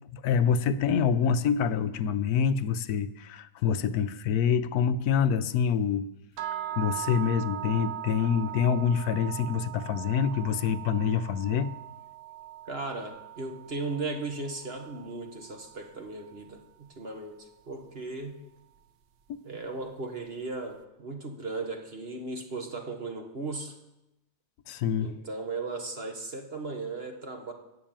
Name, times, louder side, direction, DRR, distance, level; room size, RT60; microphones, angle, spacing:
voice 1, 0.1-6.1 6.8-11.7 24.7-25.1, left 7 dB, 70° left, 13 dB, 1.1 m, -26 dB
sound 1, 6.4-16.4, right 13 dB, 90° right, 1.4 m, -40 dB
voice 2, 12.7-18.4 19.4-23.8 25.0-27.5, right 3 dB, 40° right, 4 dB, 1.6 m, -37 dB
14.5 x 6.4 x 8.9 m, 0.91 s
omnidirectional pair, 1.8 m